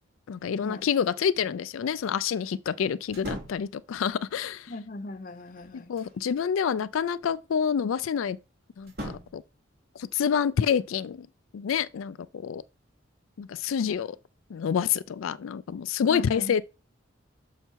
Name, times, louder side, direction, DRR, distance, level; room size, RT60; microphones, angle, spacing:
voice 1, 0.3-4.7 5.7-8.4 8.8-9.4 10.0-11.3 11.5-12.6 13.4-14.2 14.5-16.6, left 7 dB, 90° left, 0.4 m, -28 dB
sound 1, 3.1-3.7 5.4-6.2 8.8-9.5, equal, 50° right, 2.9 m, -39 dB
voice 2, 4.7-5.9 16.1-16.6, left 2 dB, 40° left, 0.6 m, -38 dB
6.7 x 5.7 x 4.5 m
head